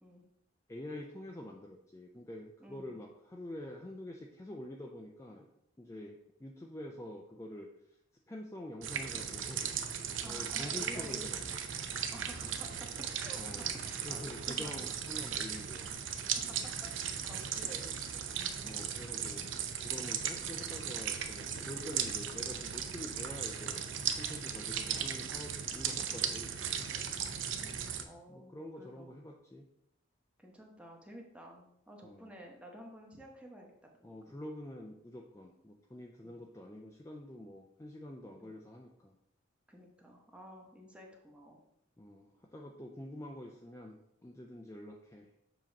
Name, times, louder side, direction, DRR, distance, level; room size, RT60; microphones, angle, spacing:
voice 1, 0.7-5.5 5.8-7.7 8.3-9.6 10.2-11.6 13.3-13.7 14.0-16.0 17.3-17.5 18.6-26.9 28.3-29.7 32.0-32.3 34.0-39.1 42.0-45.3, left 1 dB, 15° left, 1 dB, 0.4 m, -47 dB
voice 2, 2.6-2.9 10.2-11.2 12.1-14.8 16.5-18.9 26.9-29.1 30.4-33.7 34.0-34.3 36.2-36.4 38.4-38.5 39.7-41.6, equal, 5° right, 0 dB, 0.9 m, -52 dB
sound 1, 8.8-28.0, right 8 dB, 70° right, 0.6 m, -37 dB
7.4 x 2.9 x 5.1 m, 0.78 s
head